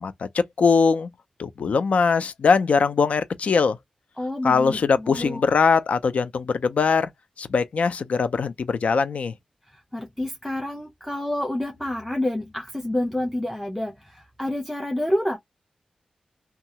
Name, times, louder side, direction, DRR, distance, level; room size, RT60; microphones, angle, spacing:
voice 1, 0.0-1.1 1.4-3.8 4.4-7.1 7.4-9.3, left 5 dB, 70° left, 0.4 m, -21 dB
voice 2, 4.2-5.4 9.7-15.4, left 1 dB, 5° left, 0.6 m, -28 dB
2.7 x 2.3 x 2.8 m
wide cardioid pair, 85°, 2 cm